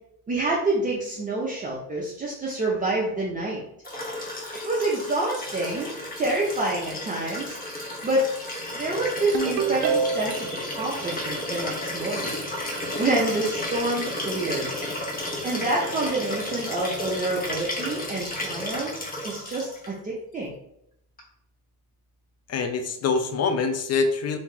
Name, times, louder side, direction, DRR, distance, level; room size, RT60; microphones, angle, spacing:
voice 1, 0.3-3.6 4.6-5.9 6.2-7.6 8.0-8.2 8.7-10.5 10.8-12.4 13.0-14.7 15.4-18.9 19.2-20.5, right 2 dB, 20° right, -5 dB, 0.6 m, -27 dB
Liquid, 3.8-19.9 21.2-21.3, left 1 dB, 20° left, 0.9 m, -33 dB
Ringtone, 9.3-10.5, right 6 dB, 70° right, 0.6 m, -25 dB
voice 2, 22.5-24.4, left 4 dB, 40° left, 8 dB, 0.5 m, -25 dB
3.0 x 2.8 x 3.6 m, 0.75 s
cardioid pair, 125°, 39 cm